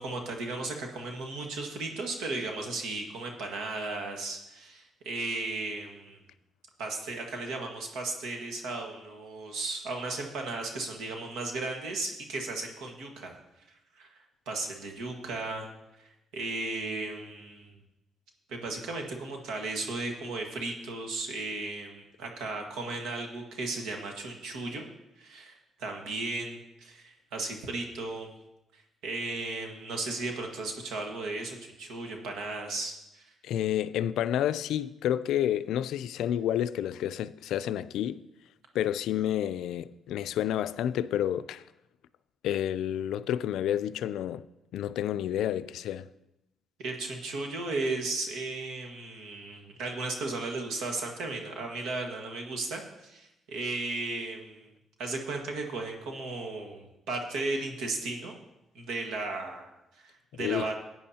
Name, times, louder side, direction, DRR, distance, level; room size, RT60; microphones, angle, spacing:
voice 1, 0.0-6.2 6.8-13.3 13.7-14.1 14.5-15.7 16.0-17.7 18.5-24.9 25.2-28.3 28.7-33.3 46.8-54.7 55.0-58.4 58.8-60.8, right 3 dB, 90° right, 1.6 m, -35 dB
voice 2, 33.4-38.2 38.7-41.6 42.4-44.4 44.7-46.1 60.4-60.6, left 11 dB, 80° left, 0.3 m, -30 dB
16.0 x 9.2 x 2.8 m
cardioid pair, 90°, 0 cm